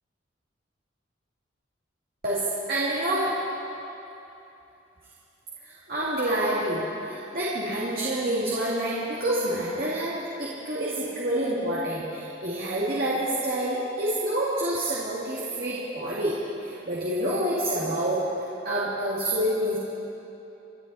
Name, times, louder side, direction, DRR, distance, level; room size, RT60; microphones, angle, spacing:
voice 1, 2.7-3.4 5.6-18.2 18.6-19.8, right 1 dB, 50° right, -7 dB, 2.4 m, -27 dB
28.0 x 12.0 x 4.2 m, 3.0 s
head